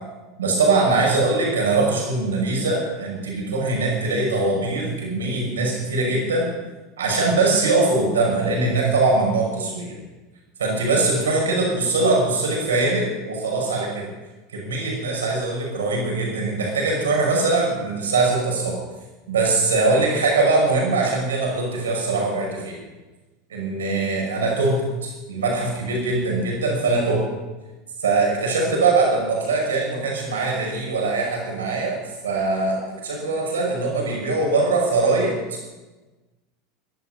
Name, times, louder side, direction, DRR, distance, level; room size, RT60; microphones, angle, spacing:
voice 1, 0.4-6.5 7.0-10.0 10.6-14.1 14.5-18.8 19.3-22.8 23.5-27.3 28.0-32.0 32.2-35.4, right 3 dB, 75° right, -1 dB, 5.8 m, -22 dB
22.5 x 11.5 x 5.5 m, 1.2 s
figure-of-eight pair, 80°, 0 cm